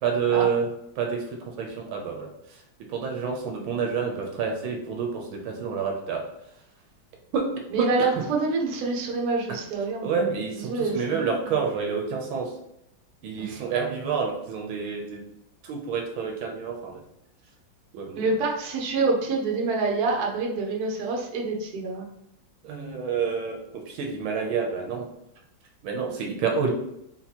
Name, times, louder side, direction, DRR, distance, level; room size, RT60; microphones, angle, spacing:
voice 1, 0.0-0.7 1.0-1.2 1.6-2.3 2.9-6.2 7.3-7.4 7.8-8.1 10.0-12.5 13.2-15.2 15.6-17.0 17.9-18.2 22.6-25.1 25.8-26.7, right 6 dB, 75° right, 1 dB, 1.5 m, -28 dB
voice 2, 7.7-10.3 10.6-11.6 13.4-13.7 18.1-22.1, right 3 dB, 55° right, -1 dB, 1.2 m, -27 dB
4.1 x 2.9 x 4.1 m, 0.80 s
omnidirectional pair, 2.3 m